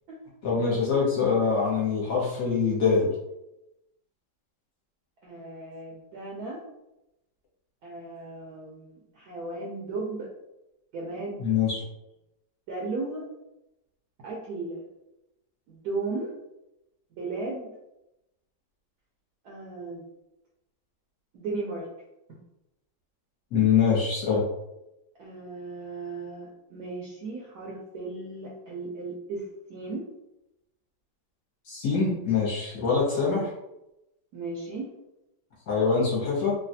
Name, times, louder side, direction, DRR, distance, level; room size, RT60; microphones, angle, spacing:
voice 1, 0.4-3.1 11.4-11.8 23.5-24.4 31.7-33.5 35.7-36.5, left 5 dB, 55° left, -6 dB, 1.2 m, -24 dB
voice 2, 5.2-6.6 7.8-10.3 10.9-11.4 12.7-13.3 14.2-14.8 15.7-16.3 17.2-17.7 19.4-20.0 21.3-21.9 25.2-29.4 29.7-30.0 34.3-34.9, right 3 dB, 70° right, -3 dB, 1.0 m, -35 dB
3.2 x 2.3 x 2.6 m, 0.90 s
omnidirectional pair, 2.0 m